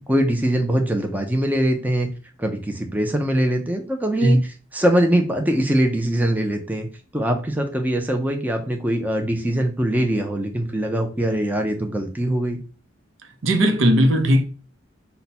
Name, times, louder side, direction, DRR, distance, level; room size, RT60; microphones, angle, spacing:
voice 1, 0.0-2.1 2.4-4.4 4.7-6.9 7.1-12.6, right 1 dB, 10° right, 0.5 m, -22 dB
voice 2, 13.4-14.4, equal, 70° right, 0.7 m, -17 dB
5.5 x 2.3 x 4.1 m
head